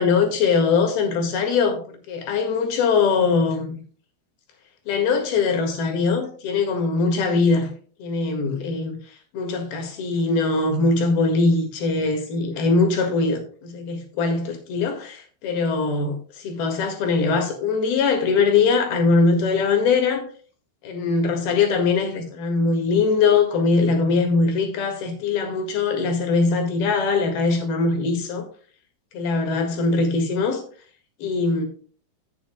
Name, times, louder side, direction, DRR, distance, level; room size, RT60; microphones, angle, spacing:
voice 1, 0.0-1.8 2.1-3.8 4.9-7.7 8.0-9.0 9.3-20.3 20.8-28.5 29.1-30.6 31.2-31.7, left 4 dB, 70° left, 3.6 m, -21 dB
16.0 x 7.0 x 2.2 m
omnidirectional pair, 4.6 m